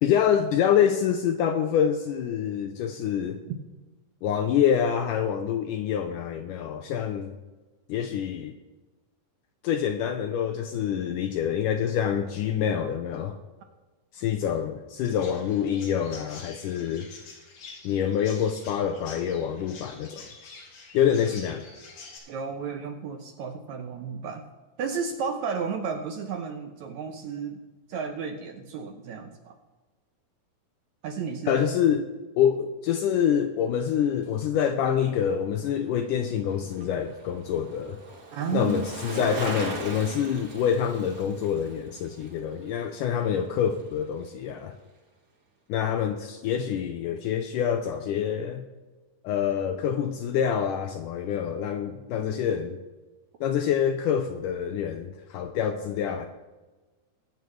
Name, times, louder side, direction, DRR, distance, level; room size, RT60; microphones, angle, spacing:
voice 1, 0.0-3.4 4.2-7.4 7.9-8.5 9.6-13.4 14.1-17.1 17.8-20.2 20.9-21.6 31.5-32.1 32.4-38.0 38.5-44.7 45.7-48.7 49.2-52.8 53.4-56.3, left 8 dB, 80° left, 7 dB, 1.9 m, -26 dB
Chirp tweet, 15.0-22.2, left 4 dB, 65° left, 3.7 m, -47 dB
voice 2, 22.3-24.4 24.8-27.6 27.9-29.5 31.0-31.6 38.3-38.9, right 6 dB, 80° right, 4 dB, 1.7 m, -33 dB
Bicycle, 35.6-44.0 44.3-44.4, right 3 dB, 60° right, 0.9 m, -41 dB
sound 1, 39.1-41.6 41.9-42.0, right 2 dB, 25° right, 3.8 m, -39 dB
21.5 x 8.0 x 3.2 m, 1.2 s
omnidirectional pair, 4.3 m